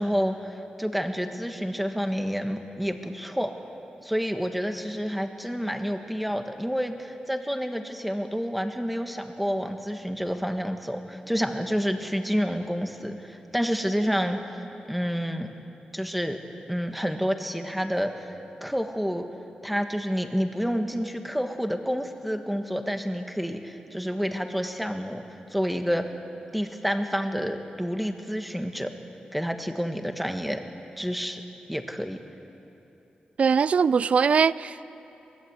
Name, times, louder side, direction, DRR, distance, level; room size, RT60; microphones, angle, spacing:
voice 1, 0.0-3.5 4.0-14.4 14.8-15.5 15.9-16.4 16.7-18.3 18.6-19.2 19.6-25.2 25.5-26.1 26.5-28.9 29.3-30.6 31.0-31.4 31.7-32.2, equal, ahead, 6 dB, 1.5 m, -29 dB
voice 2, 33.4-34.9, right 6 dB, 55° right, 18 dB, 0.5 m, -21 dB
23.5 x 20.0 x 8.1 m, 2.9 s
wide cardioid pair, 135°, 3 cm